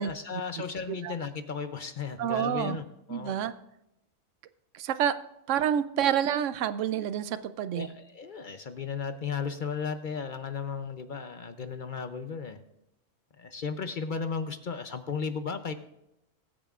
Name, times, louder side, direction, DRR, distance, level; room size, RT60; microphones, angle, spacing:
voice 1, 0.0-3.3 7.7-12.6 13.4-15.7, left 5 dB, 50° left, 9 dB, 0.6 m, -35 dB
voice 2, 2.2-2.8 3.1-3.5 4.7-5.2 5.5-7.9, right 9 dB, 70° right, 13 dB, 0.9 m, -28 dB
21.5 x 8.8 x 2.4 m, 0.84 s
omnidirectional pair, 1.4 m